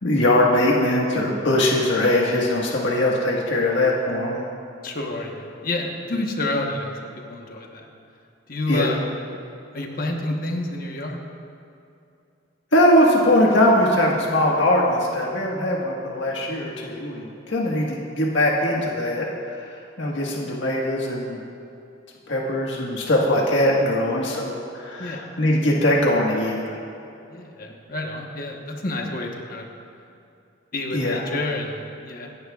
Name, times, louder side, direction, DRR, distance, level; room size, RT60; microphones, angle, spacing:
voice 1, 0.0-4.4 8.7-8.9 12.7-19.3 20.0-21.4 22.3-26.7 30.9-31.2, left 1 dB, 80° left, -3 dB, 1.6 m, -21 dB
voice 2, 4.8-7.9 8.5-9.1 9.7-11.2 25.0-25.2 27.3-29.7 30.7-32.3, left 2 dB, 50° left, 1 dB, 1.2 m, -29 dB
26.5 x 11.0 x 2.4 m, 2.6 s
head